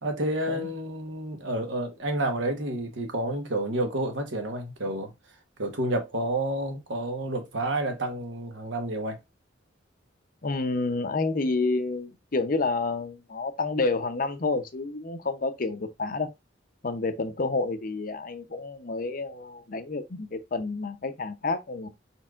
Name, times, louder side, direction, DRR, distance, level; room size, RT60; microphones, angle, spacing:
voice 1, 0.0-5.1 5.6-9.2, right 1 dB, 75° right, 1.2 m, -29 dB
voice 2, 10.4-16.3 16.8-21.9, left 3 dB, 45° left, 0.6 m, -29 dB
4.7 x 4.3 x 2.4 m
head